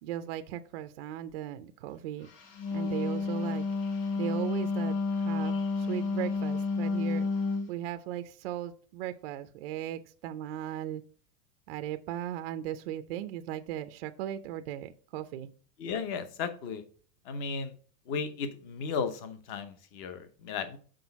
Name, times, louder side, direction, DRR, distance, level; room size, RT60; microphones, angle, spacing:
voice 1, 0.0-2.3 2.7-3.6 4.2-7.3 7.7-11.0 11.7-15.5, right 12 dB, 40° right, 9 dB, 0.5 m, -37 dB
Wind instrument woodwind instrument, 2.4-7.7, left 4 dB, 75° left, 2.1 m, -30 dB
voice 2, 15.8-16.8 17.3-17.8 18.1-20.8, left 5 dB, 25° left, 10 dB, 0.7 m, -35 dB
6.2 x 4.8 x 5.7 m, 0.42 s
supercardioid pair, 165°, 48 cm